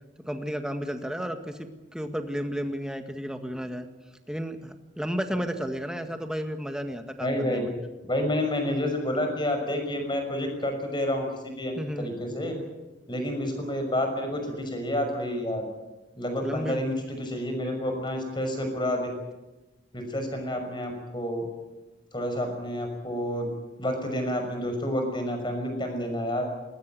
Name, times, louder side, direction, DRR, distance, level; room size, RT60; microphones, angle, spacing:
voice 1, 0.2-3.9 4.3-7.7 11.8-12.1 12.5-12.7 16.4-16.8, equal, 5° right, 6 dB, 1.8 m, -33 dB
voice 2, 7.2-7.7 8.0-12.5 13.1-15.7 16.1-19.1 19.9-21.4 22.1-23.5 23.8-26.4, left 1 dB, 25° left, 5 dB, 6.0 m, -29 dB
20.5 x 20.0 x 9.3 m, 1.1 s
head